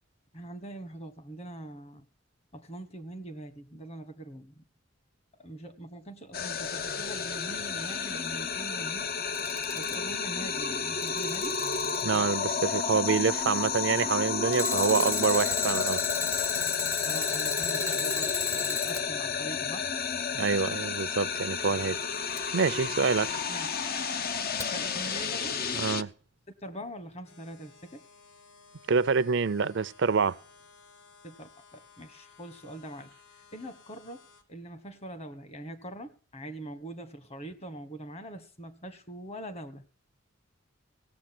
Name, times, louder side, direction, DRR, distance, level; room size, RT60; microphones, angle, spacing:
voice 1, 0.3-2.0 2.5-4.6 5.4-9.1 9.7-11.6 17.0-19.9 23.5-23.8 24.5-25.6 26.6-28.0 31.2-33.1 33.5-39.8, right 1 dB, 35° left, 1.4 m, -43 dB
sound 1, 6.3-26.0, left 6 dB, 50° left, 0.7 m, -31 dB
Alarm, 9.2-10.1 10.8-12.2 14.5-19.0 22.4-22.5 24.6-24.7, left 5 dB, 15° left, 0.7 m, -32 dB
voice 2, 12.0-16.0 20.3-22.0 22.5-23.3 25.7-26.1 28.9-30.4, right 5 dB, 65° right, 0.5 m, -26 dB
sound 2, 27.2-34.4, left 4 dB, 75° left, 3.7 m, -57 dB
17.5 x 7.2 x 6.0 m
head